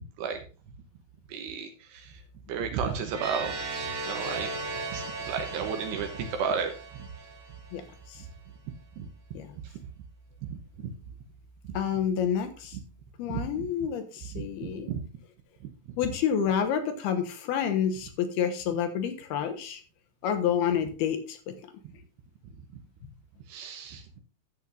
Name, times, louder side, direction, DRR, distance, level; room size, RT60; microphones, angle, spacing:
voice 1, 1.3-2.1 2.5-3.6 4.1-4.5 4.9-6.7 9.0-9.1 14.3-14.4 14.9-15.0 23.5-24.2, right 6 dB, 75° right, 4 dB, 3.1 m, -32 dB
sound 1, 3.1-7.9, right 3 dB, 55° right, 4.6 m, -37 dB
voice 2, 11.7-12.8 13.2-14.9 16.0-19.8 20.2-21.5, left 8 dB, 75° left, 7 dB, 2.9 m, -29 dB
13.0 x 8.1 x 2.6 m, 0.37 s
omnidirectional pair, 4.9 m